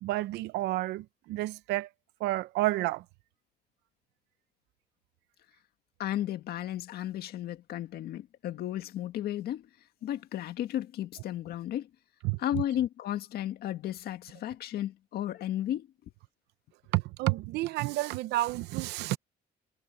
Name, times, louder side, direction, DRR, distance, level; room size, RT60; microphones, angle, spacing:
voice 1, 0.0-1.9 2.2-3.0 12.2-12.4 16.9-19.2, right 17 dB, 85° right, 0.8 m, -30 dB
voice 2, 6.0-9.7 10.0-11.9 12.4-15.9, left 12 dB, 65° left, 1.8 m, -34 dB
cardioid pair, 110°, 17 cm